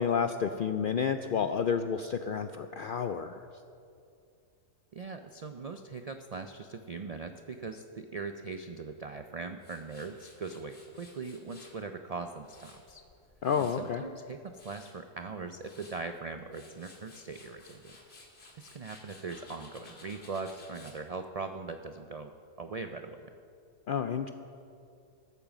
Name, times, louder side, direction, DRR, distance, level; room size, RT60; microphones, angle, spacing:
voice 1, 0.0-3.5 13.4-14.0 23.9-24.3, left 7 dB, 70° left, 8 dB, 0.5 m, -30 dB
voice 2, 4.9-13.0 13.6-17.9 18.5-22.3 22.6-23.3, right 4 dB, 70° right, 7 dB, 0.3 m, -40 dB
Tools, 9.6-11.8 12.2-13.9 14.3-14.9 15.4-16.0 16.4-21.0, left 2 dB, 50° left, 2.1 m, -55 dB
13.0 x 8.9 x 7.1 m, 2.5 s
omnidirectional pair, 1.4 m